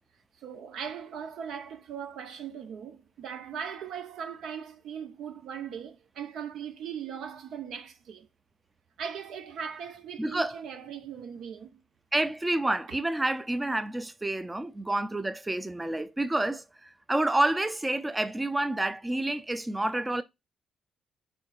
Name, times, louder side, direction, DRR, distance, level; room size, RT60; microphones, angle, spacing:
voice 1, 0.4-8.3 9.0-11.8 12.9-13.0, right 7 dB, 75° right, 0.8 m, -39 dB
voice 2, 10.2-10.6 12.1-20.2, right 1 dB, 15° right, 0.5 m, -29 dB
4.6 x 4.3 x 2.4 m
cardioid pair, 90°, 0 cm